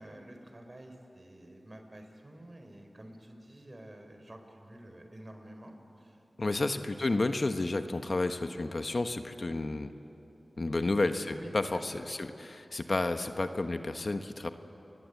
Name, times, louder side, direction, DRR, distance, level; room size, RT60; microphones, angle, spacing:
voice 1, 0.0-6.2 6.4-6.6 10.7-10.9 11.3-11.8, right 1 dB, 40° right, 4 dB, 4.7 m, -50 dB
voice 2, 6.4-9.9 10.6-14.5, left 2 dB, 55° left, 7 dB, 1.3 m, -31 dB
29.0 x 21.5 x 8.4 m, 2.9 s
cardioid pair, 40°, 0 cm